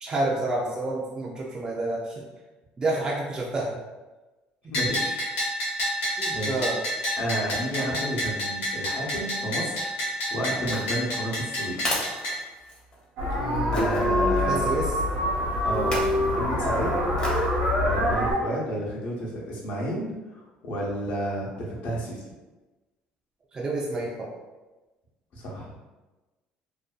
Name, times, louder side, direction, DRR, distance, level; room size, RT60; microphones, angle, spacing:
voice 1, 0.0-2.3 2.8-3.8 4.6-4.7 6.2-6.8 13.4-14.9 23.5-24.3, right 2 dB, 25° right, -4 dB, 0.4 m, -29 dB
Bell, 4.7-12.4, equal, 85° left, 1.0 m, -29 dB
voice 2, 4.7-5.2 6.3-6.6 7.2-11.9 13.7-14.6 15.6-17.2 17.8-22.3 25.3-25.7, equal, 60° left, -3 dB, 0.7 m, -31 dB
sound 1, 10.6-13.0 13.7-14.1 15.7-16.2 17.2-17.5 18.0-18.1, left 1 dB, 30° left, 0.7 m, -33 dB
Horns of Utrecht, 13.2-18.3, left 1 dB, 85° right, 0.8 m, -25 dB
2.6 x 2.2 x 2.3 m, 1.1 s
cardioid pair, 125°, 3 cm